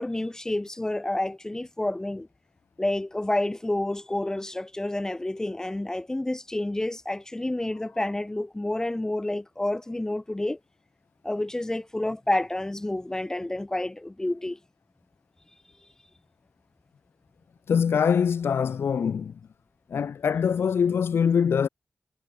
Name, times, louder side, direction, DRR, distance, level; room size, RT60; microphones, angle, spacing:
voice 1, 0.0-2.3 2.8-10.6 11.2-14.6, left 1 dB, 15° left, 1.1 m, -29 dB
voice 2, 17.7-19.4 19.9-21.7, left 7 dB, 90° left, 0.8 m, -23 dB
wide cardioid pair, 135°, 4 cm